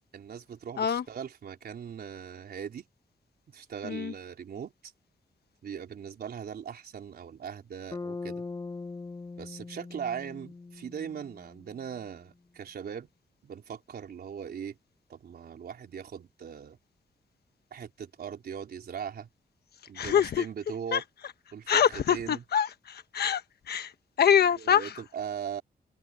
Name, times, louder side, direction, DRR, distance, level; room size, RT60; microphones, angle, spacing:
voice 1, 0.1-2.9 3.5-4.9 5.6-8.4 9.4-13.1 13.4-14.8 15.1-16.8 17.7-19.3 19.9-21.0 21.5-22.4 24.6-25.6, right 8 dB, 70° right, 4.0 m, -39 dB
Bass guitar, 7.9-12.0, left 3 dB, 25° left, 0.7 m, -41 dB
voice 2, 19.9-20.5 20.9-21.0 21.7-23.4 23.7-23.9 24.2-25.0, left 8 dB, 75° left, 1.3 m, -25 dB
wide cardioid pair, 165°, 17 cm